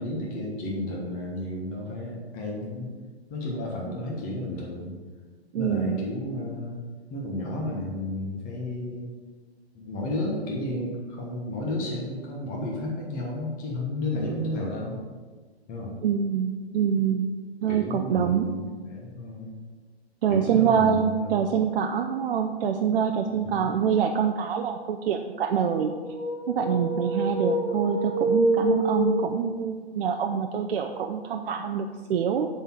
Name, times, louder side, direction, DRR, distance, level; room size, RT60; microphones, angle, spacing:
voice 1, 0.0-2.9 3.3-4.9 5.5-6.8 7.1-9.1 9.7-15.0 15.7-16.0 17.7-19.6 20.3-21.4 23.4-23.5, left 1 dB, 25° left, -2 dB, 1.3 m, -32 dB
voice 2, 5.5-6.0 16.0-17.3 17.6-18.5 20.2-25.9 26.5-32.5, right 7 dB, 60° right, 4 dB, 0.6 m, -25 dB
sound 1, 26.0-29.6, right 1 dB, ahead, 1.4 m, -26 dB
7.0 x 4.2 x 5.7 m, 1.5 s
hypercardioid pair, 125°, 33 cm